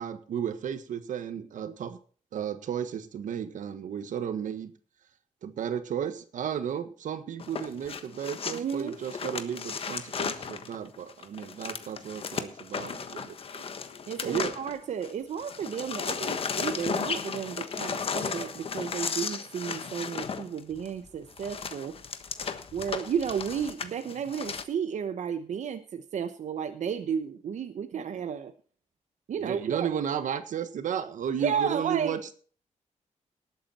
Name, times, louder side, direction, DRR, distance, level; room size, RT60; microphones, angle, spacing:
voice 1, 0.0-1.9 2.3-4.7 5.4-13.6 14.2-14.6 27.9-28.0 29.4-32.3, right 8 dB, 90° right, 11 dB, 1.5 m, -34 dB
sound 1, 7.4-15.1 15.4-24.6, left 6 dB, 45° left, 1.3 m, -35 dB
voice 2, 8.5-9.0 14.1-22.0 22.7-28.5 29.3-29.9 31.4-32.1, right 7 dB, 70° right, 8 dB, 1.0 m, -33 dB
19.0 x 8.5 x 4.3 m, 0.42 s
wide cardioid pair, 150°, 13 cm